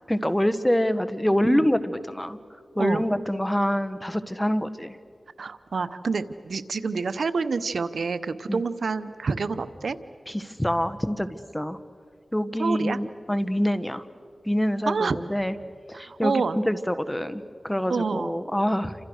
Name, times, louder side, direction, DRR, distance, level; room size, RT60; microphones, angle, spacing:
voice 1, 0.1-2.4 2.7-5.0 8.5-8.6 10.3-11.8 12.3-14.1 14.4-15.6 15.9-19.1, equal, 10° left, 11 dB, 1.6 m, -26 dB
voice 2, 5.4-10.0 12.6-13.0 14.9-15.2 15.9-16.6 17.9-18.3, right 4 dB, 90° right, 13 dB, 0.9 m, -28 dB
29.5 x 27.0 x 6.5 m, 2.1 s
cardioid pair, 45°, 0 cm